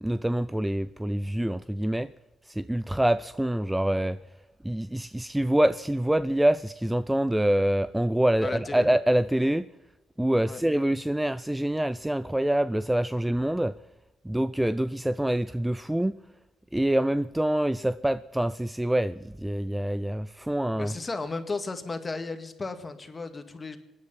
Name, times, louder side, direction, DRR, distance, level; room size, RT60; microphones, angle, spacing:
voice 1, 0.0-2.1 2.5-4.2 4.6-9.7 10.2-13.8 14.2-16.2 16.7-20.9, right 1 dB, 5° right, 0.5 m, -26 dB
voice 2, 8.4-8.9 10.4-10.6 20.8-23.8, left 3 dB, 25° left, 2.1 m, -34 dB
25.5 x 9.8 x 5.8 m
cardioid pair, 90°, 0 cm